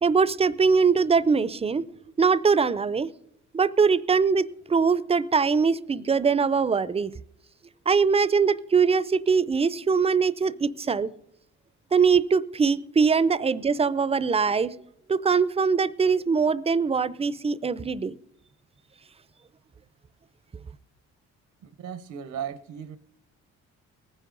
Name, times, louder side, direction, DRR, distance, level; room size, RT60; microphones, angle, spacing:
voice 1, 0.0-1.9 2.2-3.1 3.5-7.1 7.9-11.1 11.9-14.7 15.1-18.1, right 5 dB, 20° right, 0.5 m, -22 dB
voice 2, 21.6-23.0, right 9 dB, 75° right, 0.8 m, -36 dB
18.5 x 10.0 x 3.9 m
cardioid pair, 90°, 30 cm